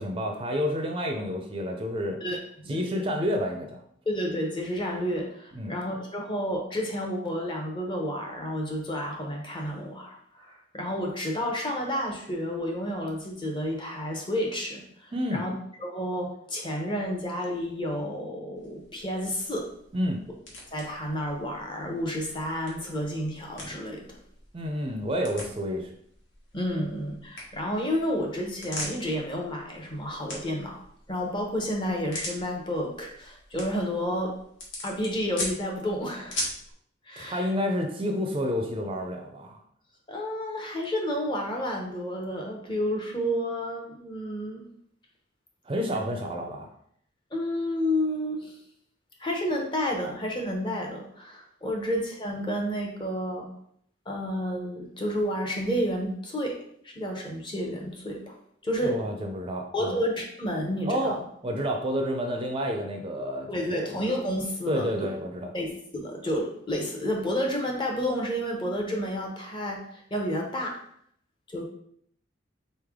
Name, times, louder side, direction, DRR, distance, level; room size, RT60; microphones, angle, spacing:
voice 1, 0.0-2.2 2.7-3.8 5.5-5.7 15.1-15.4 19.9-20.2 24.5-25.9 37.2-39.6 45.7-46.7 58.8-60.0 60.9-61.2 61.4-64.0 64.7-65.5, equal, 25° right, 3 dB, 0.4 m, -29 dB
voice 2, 2.2-2.8 4.1-15.5 15.8-19.7 20.7-24.1 26.5-30.8 31.1-34.4 34.8-36.4 37.1-37.5 40.1-44.6 47.3-48.6 49.2-53.5 54.1-56.6 56.8-58.3 58.6-59.0 59.7-61.2 63.5-64.9 65.5-70.8 71.5-71.6, equal, 25° left, 1 dB, 0.7 m, -30 dB
sound 1, 18.6-36.7, left 1 dB, 80° left, 1.4 m, -42 dB
4.1 x 3.3 x 3.6 m, 0.67 s
head